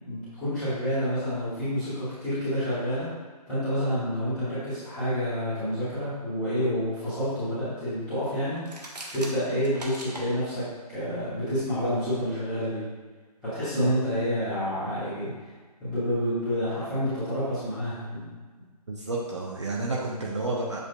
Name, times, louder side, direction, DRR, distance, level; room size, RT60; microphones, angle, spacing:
voice 1, 0.0-3.1 3.5-8.6 9.1-12.8 13.4-15.3 15.8-18.3, equal, 5° left, -17 dB, 1.2 m, -28 dB
sound 1, 8.6-10.3, right 2 dB, 75° right, 0.9 m, -40 dB
voice 2, 18.9-20.8, right 2 dB, 45° right, -3 dB, 0.6 m, -30 dB
7.3 x 2.6 x 2.2 m, 1.4 s
figure-of-eight pair, 160°, 21 cm